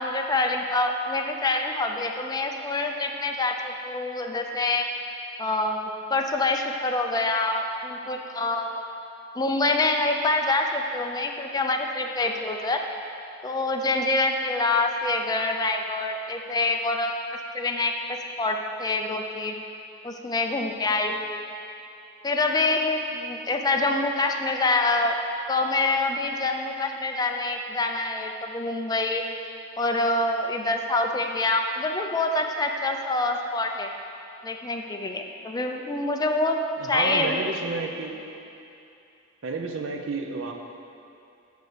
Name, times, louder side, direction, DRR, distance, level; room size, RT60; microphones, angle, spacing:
voice 1, 0.0-4.9 5.4-8.9 9.4-12.8 13.4-17.3 17.5-19.6 20.0-21.4 22.2-25.2 25.5-29.2 29.8-33.9 34.4-36.6 36.9-37.4, left 2 dB, 20° left, 3 dB, 0.5 m, -26 dB
voice 2, 36.8-38.2 39.4-40.5, right 3 dB, 85° right, 3 dB, 0.7 m, -30 dB
6.6 x 4.7 x 6.7 m, 2.7 s
head